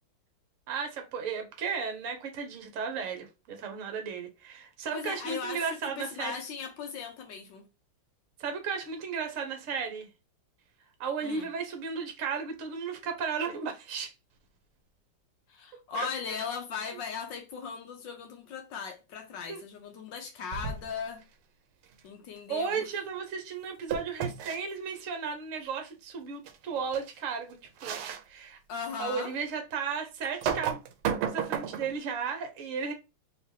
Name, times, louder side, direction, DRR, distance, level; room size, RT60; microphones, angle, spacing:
voice 1, 0.7-6.4 8.4-10.1 11.0-14.1 15.9-16.1 19.5-19.6 22.5-28.0 28.3-28.6 29.0-30.8 31.3-32.9, right 6 dB, 50° right, 1.0 m, -34 dB
voice 2, 4.9-7.7 11.2-11.5 15.5-21.2 22.0-22.9 28.7-29.3, left 6 dB, 70° left, 1.2 m, -38 dB
sound 1, 20.5-21.0 23.9-24.6 26.5-26.6 26.9-27.1 27.8-28.2 28.8-28.9 30.2-32.0, right 8 dB, 80° right, 1.5 m, -32 dB
4.2 x 2.9 x 3.3 m
omnidirectional pair, 2.4 m